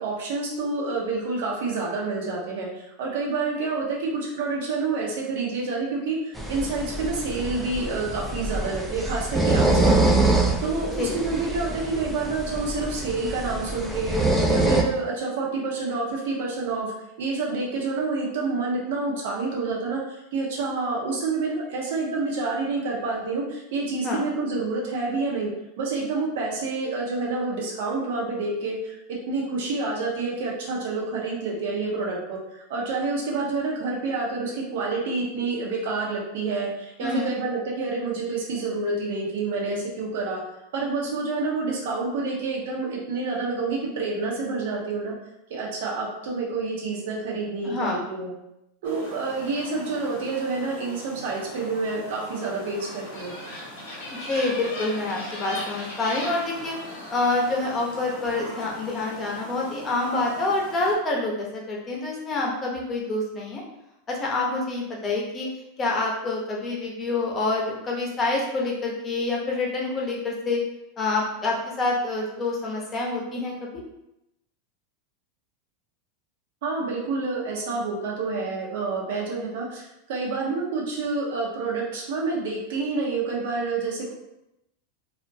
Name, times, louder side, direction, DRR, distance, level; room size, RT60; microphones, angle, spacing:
voice 1, 0.0-14.2 14.5-16.9 17.2-25.5 25.8-40.4 40.7-45.1 45.5-48.3 48.8-53.3 76.6-84.1, right 3 dB, 70° right, -3 dB, 0.7 m, -28 dB
sound 1, 6.4-14.8, right 2 dB, 5° right, 0.3 m, -25 dB
voice 2, 37.0-37.3 47.6-48.0 54.1-56.7 57.1-63.6 64.1-65.5 65.8-70.6 71.0-73.7, left 2 dB, 25° left, -2 dB, 0.7 m, -27 dB
sound 2, 48.8-60.9, left 1 dB, 85° left, 0.8 m, -39 dB
2.4 x 2.1 x 2.6 m, 0.88 s
supercardioid pair, 120°, 0 cm